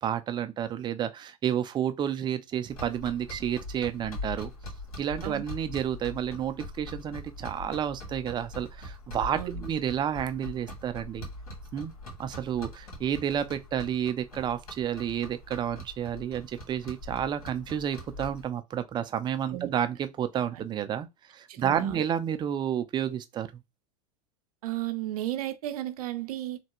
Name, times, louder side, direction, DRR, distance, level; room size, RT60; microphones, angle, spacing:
voice 1, 0.0-4.5 5.0-11.3 11.7-11.9 12.2-23.6, right 9 dB, 25° right, 0.4 m, -30 dB
sound 1, 2.7-18.5, left 1 dB, 90° left, 1.7 m, -42 dB
voice 2, 9.3-9.7 19.5-19.7 20.5-20.6 21.5-22.0 24.6-26.6, right 14 dB, 80° right, 0.6 m, -34 dB
3.2 x 2.2 x 2.9 m
hypercardioid pair, 110°, 19 cm